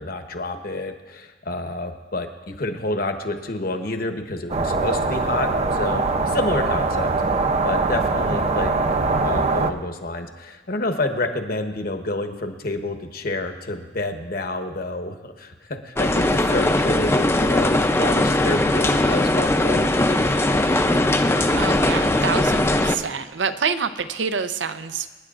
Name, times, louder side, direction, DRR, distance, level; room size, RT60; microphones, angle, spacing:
voice 1, 0.0-8.7 9.2-19.9, left 2 dB, 55° left, 5 dB, 1.1 m, -28 dB
sound 1, 4.5-9.7, right 3 dB, 35° right, 0.6 m, -22 dB
sound 2, 16.0-22.9, left 1 dB, 15° left, 0.5 m, -20 dB
voice 2, 21.6-25.1, right 6 dB, 85° right, 10 dB, 0.7 m, -27 dB
27.0 x 9.9 x 2.5 m, 1.3 s
head